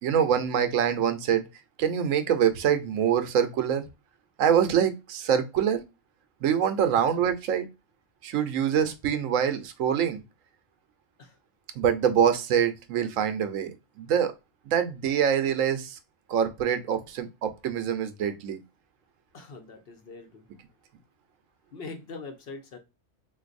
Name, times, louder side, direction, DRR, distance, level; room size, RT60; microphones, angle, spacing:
voice 1, 0.0-1.5 1.8-3.8 4.4-5.8 6.4-7.7 8.2-10.2 11.8-14.3 14.7-16.0 16.3-18.6, right 8 dB, 90° right, 9 dB, 1.0 m, -25 dB
voice 2, 19.3-20.4 21.7-22.8, left 3 dB, 55° left, 5 dB, 0.8 m, -42 dB
3.9 x 2.5 x 2.5 m, 0.25 s
omnidirectional pair, 1.3 m